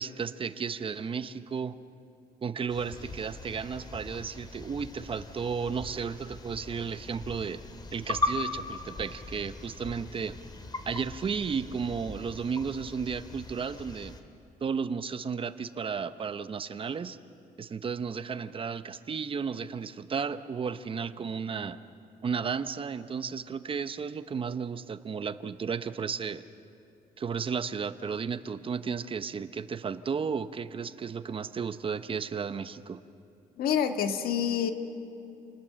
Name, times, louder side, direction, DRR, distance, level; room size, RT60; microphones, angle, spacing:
voice 1, 0.0-1.8 2.4-7.6 7.9-10.4 10.8-14.2 14.6-17.2 17.6-21.8 22.2-26.4 27.2-33.0, right 6 dB, 35° right, 12 dB, 0.9 m, -33 dB
sound 1, 2.7-14.2, left 2 dB, 30° left, 2.2 m, -39 dB
voice 2, 33.6-34.7, left 8 dB, 85° left, 7 dB, 1.6 m, -27 dB
29.0 x 20.0 x 7.7 m, 2.8 s
cardioid pair, 120°, 15 cm